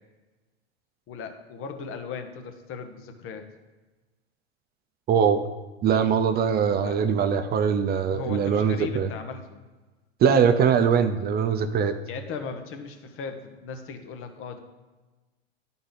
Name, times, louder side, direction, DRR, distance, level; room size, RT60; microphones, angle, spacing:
voice 1, 1.1-3.4 6.8-7.0 8.1-9.6 12.1-14.6, left 5 dB, 40° left, 7 dB, 1.1 m, -37 dB
voice 2, 5.1-5.4 5.8-9.1 10.2-11.9, right 7 dB, 30° right, 9 dB, 0.6 m, -22 dB
11.0 x 3.9 x 4.0 m, 1.2 s
hypercardioid pair, 95°, 33 cm